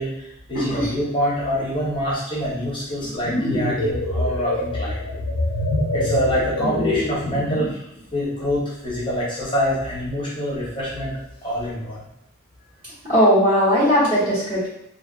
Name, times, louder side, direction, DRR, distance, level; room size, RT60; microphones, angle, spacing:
voice 1, 0.0-5.0 5.9-7.8 8.1-11.1 11.4-12.0, equal, 25° left, -7 dB, 0.7 m, -26 dB
voice 2, 0.5-0.9 13.1-14.7, equal, 25° right, -13 dB, 1.0 m, -18 dB
sound 1, 3.0-7.8, left 1 dB, 90° left, 0.5 m, -24 dB
2.4 x 2.3 x 2.3 m, 0.80 s
head